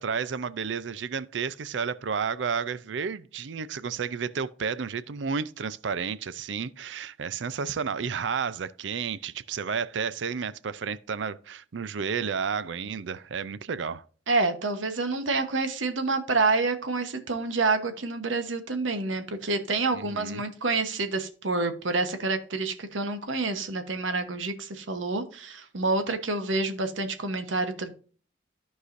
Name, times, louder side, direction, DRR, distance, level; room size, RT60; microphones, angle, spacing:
voice 1, 0.0-14.0 19.9-20.4, right 6 dB, 70° right, 0.5 m, -31 dB
voice 2, 14.3-27.9, right 3 dB, 90° right, 1.1 m, -28 dB
14.0 x 4.8 x 2.6 m
head